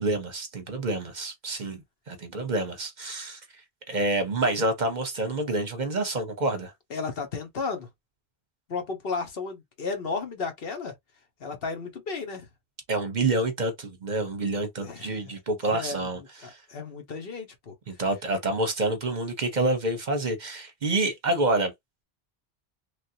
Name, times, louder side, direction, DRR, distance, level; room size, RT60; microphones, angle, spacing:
voice 1, 0.0-1.8 2.1-3.4 3.9-6.7 12.9-16.6 17.9-21.7, right 2 dB, 50° right, 0.8 m, -28 dB
voice 2, 6.9-7.9 8.7-10.9 11.4-12.5 14.8-15.3 15.6-16.1 16.4-17.7, left 4 dB, 60° left, 1.1 m, -34 dB
3.2 x 2.4 x 2.7 m
omnidirectional pair, 1.1 m